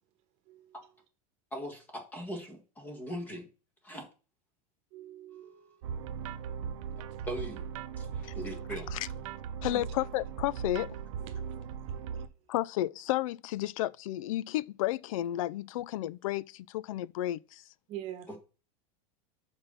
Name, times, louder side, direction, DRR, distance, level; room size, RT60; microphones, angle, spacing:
voice 1, 1.5-3.5 3.8-4.1 7.3-7.7 8.0-8.9 18.3-18.4, equal, 10° left, 1.5 m, -40 dB
voice 2, 4.9-5.7 5.9-6.1 9.7-9.8 11.3-11.5 17.9-18.4, right 11 dB, 35° right, 1.3 m, -44 dB
sound 1, 5.8-12.3, right 7 dB, 60° right, 0.8 m, -38 dB
voice 3, 9.6-10.9 12.5-17.6, left 15 dB, 60° left, 0.4 m, -32 dB
6.1 x 5.3 x 5.5 m
supercardioid pair, 180°, 19 cm